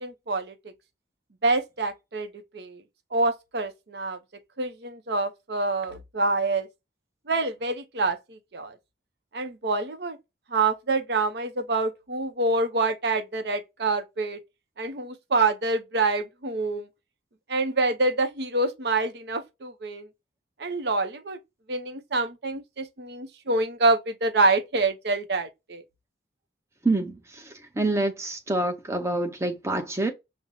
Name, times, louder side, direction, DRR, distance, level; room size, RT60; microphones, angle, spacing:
voice 1, 0.0-0.5 1.4-2.3 2.5-2.8 3.1-4.2 4.6-6.7 7.3-8.8 9.3-10.2 10.5-14.4 14.8-16.9 17.5-20.1 20.6-21.4 21.7-25.8, right 3 dB, 65° right, 0.6 m, -26 dB
voice 2, 26.8-30.1, right 2 dB, 15° right, 0.6 m, -27 dB
5.2 x 2.0 x 2.6 m
head